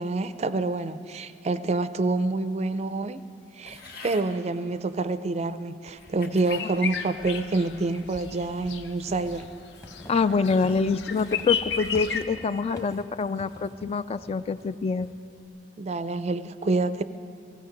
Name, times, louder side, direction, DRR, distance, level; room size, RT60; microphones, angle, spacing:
voice 1, 0.0-3.2 3.6-9.5 15.8-17.0, right 3 dB, 40° right, 13 dB, 0.4 m, -27 dB
sound 1, 3.6-4.3 5.1-5.2 5.9-6.7 7.2-7.6, left 3 dB, 60° left, 1.6 m, -45 dB
Walk footsteps / Squeak, 5.9-15.5, equal, 20° left, 1.1 m, -48 dB
sound 2, 6.5-12.2, left 7 dB, 90° left, 0.7 m, -34 dB
voice 2, 10.1-15.1, left 4 dB, 35° left, 13 dB, 0.3 m, -26 dB
16.5 x 16.0 x 5.2 m, 2.4 s
head